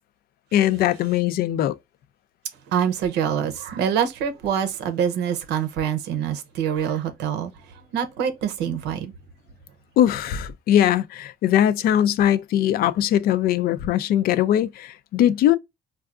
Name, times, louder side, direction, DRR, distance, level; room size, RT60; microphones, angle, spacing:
voice 1, 0.5-1.7 10.0-15.6, left 11 dB, 65° left, 0.4 m, -20 dB
voice 2, 2.7-7.5 7.9-9.1, right 8 dB, 85° right, 0.7 m, -25 dB
4.5 x 2.3 x 2.4 m
cardioid pair, 110°, 17 cm